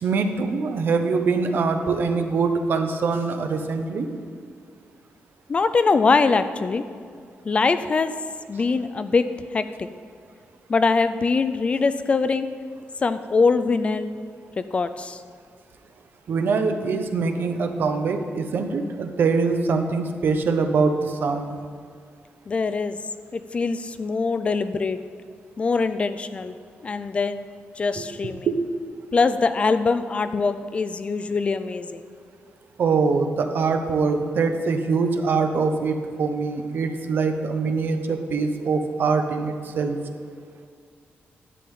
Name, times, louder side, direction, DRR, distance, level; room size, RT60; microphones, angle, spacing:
voice 1, 0.0-4.2 16.3-21.5 28.0-28.1 28.5-28.6 32.8-40.0, right 4 dB, 55° right, 7 dB, 0.8 m, -23 dB
voice 2, 5.5-6.8 7.5-8.1 8.5-9.2 9.5-9.9 10.7-12.5 13.0-14.1 14.6-15.2 22.5-23.0 23.3-25.0 25.6-26.6 26.8-27.5 27.8-28.5 29.1-32.0, left 4 dB, 30° left, 11 dB, 0.3 m, -23 dB
11.0 x 8.5 x 3.7 m, 2.2 s
wide cardioid pair, 175°, 4 cm